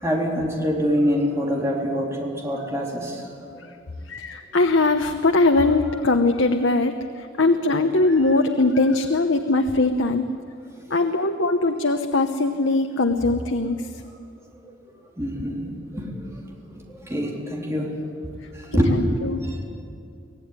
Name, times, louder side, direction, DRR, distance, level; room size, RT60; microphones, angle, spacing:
voice 1, 0.0-3.2 14.6-14.7 15.2-16.3 17.1-17.9 18.7-19.6, equal, 15° right, -2 dB, 3.5 m, -25 dB
voice 2, 4.1-10.2 10.9-14.0 18.9-19.4, left 2 dB, 75° left, 5 dB, 1.0 m, -21 dB
25.0 x 16.5 x 9.7 m, 2.4 s
head